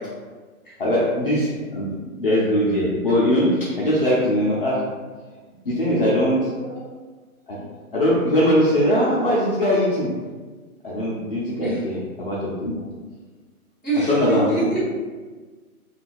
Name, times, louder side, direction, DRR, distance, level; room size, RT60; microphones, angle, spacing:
voice 1, 0.8-1.9 2.2-4.8 5.6-6.4 7.5-7.7 7.9-10.1 10.8-12.8 14.1-14.4, equal, 40° left, -8 dB, 0.5 m, -21 dB
voice 2, 6.4-6.8 11.6-11.8 13.8-14.8, right 2 dB, ahead, -19 dB, 1.3 m, -26 dB
3.8 x 2.3 x 2.5 m, 1.4 s
hypercardioid pair, 170°, 44 cm